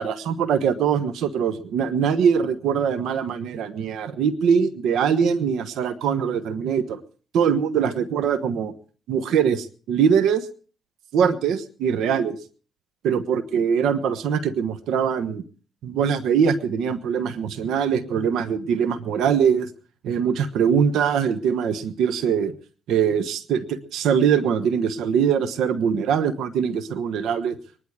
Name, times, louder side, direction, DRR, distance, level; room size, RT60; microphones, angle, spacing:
voice 1, 0.0-7.0 7.3-8.7 9.1-10.5 11.1-12.4 13.0-15.4 15.8-19.7 20.0-22.5 22.9-27.6, right 7 dB, 80° right, 13 dB, 1.2 m, -22 dB
23.0 x 11.0 x 4.8 m, 0.40 s
cardioid pair, 90°, 0 cm